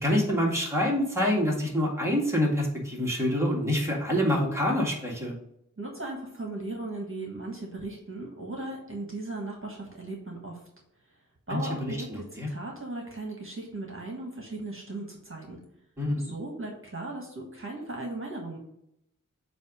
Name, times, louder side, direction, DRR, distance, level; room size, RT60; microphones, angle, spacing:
voice 1, 0.0-5.4 11.5-12.5 16.0-16.3, left 1 dB, 10° right, -3 dB, 1.8 m, -26 dB
voice 2, 5.8-10.6 11.5-15.6 16.2-18.6, right 2 dB, 40° right, -1 dB, 1.6 m, -37 dB
7.9 x 2.7 x 5.1 m, 0.79 s
wide cardioid pair, 60°, 33 cm